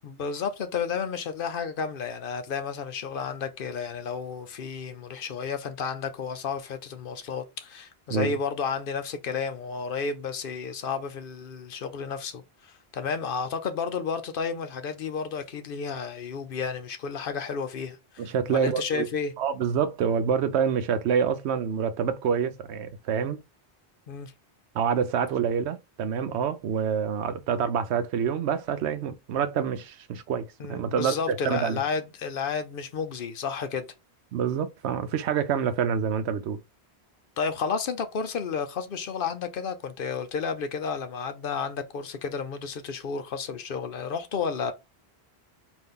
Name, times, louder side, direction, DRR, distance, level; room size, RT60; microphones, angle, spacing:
voice 1, 0.0-19.3 24.1-24.3 30.6-33.9 37.4-44.7, left 5 dB, 60° left, 0.7 m, -32 dB
voice 2, 18.2-19.1 19.4-23.4 24.7-31.8 34.3-36.6, right 7 dB, 85° right, 0.9 m, -27 dB
4.0 x 2.6 x 3.6 m
omnidirectional pair, 1.1 m